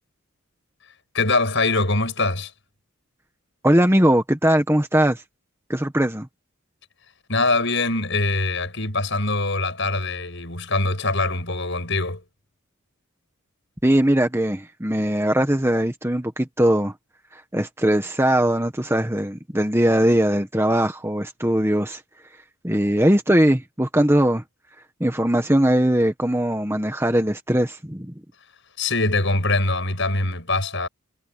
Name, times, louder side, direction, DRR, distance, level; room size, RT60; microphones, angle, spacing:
voice 1, 1.1-2.5 7.3-12.2 28.8-30.9, left 2 dB, 55° left, 7.9 m, -23 dB
voice 2, 3.6-5.2 5.7-6.3 13.8-16.9 17.3-22.0 22.6-24.4 25.0-28.1, right 1 dB, 10° right, 1.5 m, -20 dB
head